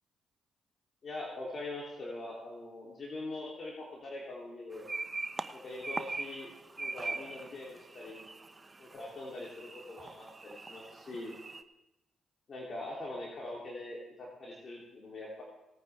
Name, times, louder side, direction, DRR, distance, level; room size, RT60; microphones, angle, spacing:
voice 1, 1.0-4.9 5.5-6.5 6.8-8.2 8.8-11.4 12.5-15.4, left 2 dB, 50° left, -4 dB, 3.2 m, -43 dB
sound 1, 4.7-11.6, right 3 dB, 30° right, 0.8 m, -42 dB
19.0 x 9.1 x 3.5 m, 0.95 s
hypercardioid pair, 45°, 0 cm